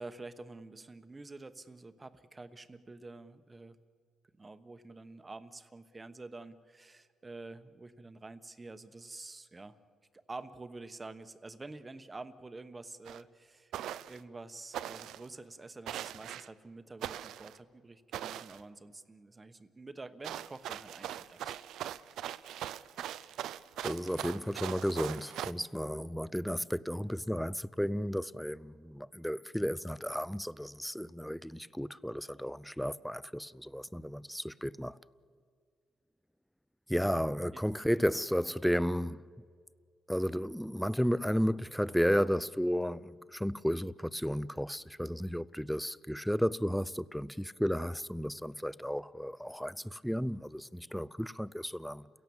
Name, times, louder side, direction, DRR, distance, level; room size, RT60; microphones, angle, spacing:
voice 1, 0.0-3.8 4.4-9.8 10.1-13.7 14.1-21.6 37.0-37.2 37.5-37.6, right 3 dB, 25° right, 1.1 m, -48 dB
sound 1, 13.1-13.2 13.7-14.2 14.7-15.3 15.9-16.5 17.0-17.6 18.1-18.6 20.2-25.5, right 11 dB, 80° right, 0.6 m, -40 dB
voice 2, 23.8-35.0 36.9-39.3 40.1-52.1, equal, ahead, 0.5 m, -33 dB
30.0 x 17.0 x 7.2 m
cardioid pair, 90°, 0 cm